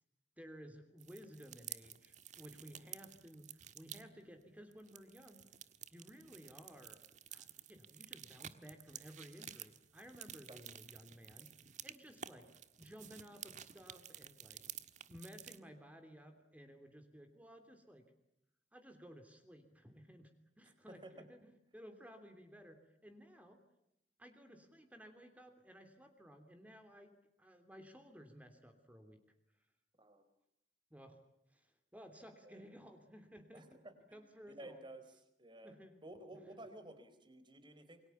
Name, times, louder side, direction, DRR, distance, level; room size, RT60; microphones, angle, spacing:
voice 1, 0.4-5.4 5.9-7.0 7.3-11.5 11.8-12.5 12.8-14.6 15.1-18.0 18.7-20.3 20.6-23.6 24.2-29.2 30.9-31.2 31.5-33.7 34.1-34.8 35.6-36.0 36.3-36.5, equal, 10° right, 6 dB, 3.2 m, -56 dB
sound 1, 1.0-4.0 4.7-15.6, right 9 dB, 45° right, 1.6 m, -52 dB
voice 2, 10.5-10.8 20.9-21.1 30.0-30.2 32.4-32.7 33.5-33.9 34.5-35.0 35.4-35.7 36.0-38.0, right 1 dB, 25° right, 10 dB, 4.4 m, -53 dB
28.0 x 23.5 x 7.2 m, 0.83 s
head